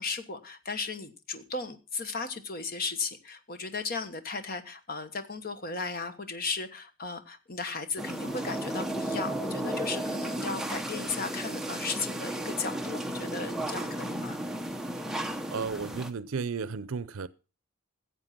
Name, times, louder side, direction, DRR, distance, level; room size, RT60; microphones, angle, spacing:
voice 1, 0.0-14.4, left 4 dB, 45° left, 1.3 m, -36 dB
sound 1, 8.0-16.1, right 1 dB, ahead, 0.8 m, -34 dB
voice 2, 15.5-17.3, right 5 dB, 80° right, 0.6 m, -33 dB
15.0 x 7.9 x 5.9 m
head